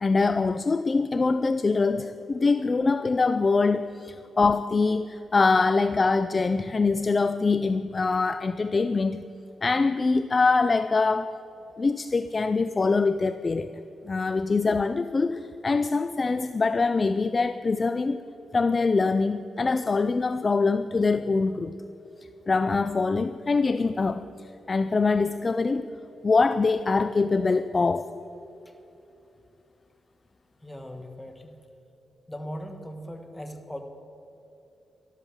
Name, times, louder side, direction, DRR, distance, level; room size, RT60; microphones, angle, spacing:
voice 1, 0.0-9.2 9.6-11.3 11.8-13.7 14.0-18.2 18.5-21.7 22.5-24.3 24.7-25.9 26.2-28.1, left 4 dB, 30° left, 0.4 m, -24 dB
voice 2, 30.6-31.5 32.3-33.8, equal, 10° left, 1.3 m, -39 dB
13.0 x 12.5 x 7.1 m
cardioid pair, 120°, 0 cm